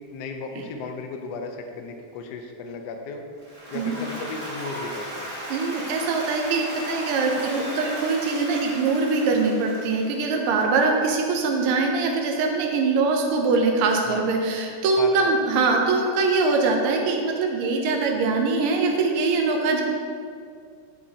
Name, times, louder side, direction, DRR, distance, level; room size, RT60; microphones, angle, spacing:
voice 1, 0.1-3.2 3.7-5.3 14.0-14.3 15.0-15.3, left 4 dB, 70° left, 4 dB, 1.0 m, -35 dB
Applause, 3.4-10.6, equal, 20° right, 1.7 m, -36 dB
voice 2, 5.5-19.8, right 3 dB, 85° right, 1 dB, 1.6 m, -23 dB
8.6 x 5.8 x 2.8 m, 2.3 s
omnidirectional pair, 2.4 m